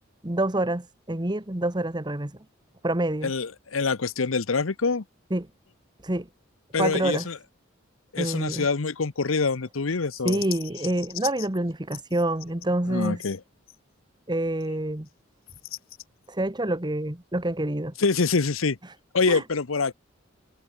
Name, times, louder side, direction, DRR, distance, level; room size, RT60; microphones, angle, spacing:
voice 1, 0.2-2.4 2.8-3.3 5.3-5.5 6.0-6.3 6.8-7.3 8.2-8.7 10.2-13.2 14.3-15.1 16.3-17.9 19.3-19.4, right 1 dB, 20° right, 1.4 m, -27 dB
voice 2, 3.2-5.0 6.7-7.4 8.1-10.4 12.9-13.4 18.0-18.8 19.1-19.9, left 4 dB, 90° left, 0.9 m, -25 dB
head